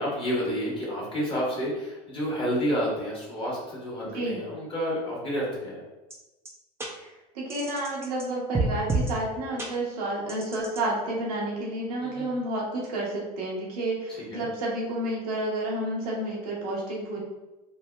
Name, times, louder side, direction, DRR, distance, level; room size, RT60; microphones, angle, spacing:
voice 1, 0.0-5.8 12.0-12.4 14.2-14.5, equal, 25° left, -5 dB, 1.3 m, -30 dB
sound 1, 6.1-6.2 6.5-6.6 6.8-6.9 7.5-8.3 8.5-9.1 9.6-9.7 10.3-10.8, right 3 dB, 15° right, 0.5 m, -29 dB
voice 2, 7.3-17.2, right 1 dB, 75° right, -4 dB, 0.9 m, -30 dB
3.1 x 2.1 x 2.2 m, 1.1 s
hypercardioid pair, 90°, 19 cm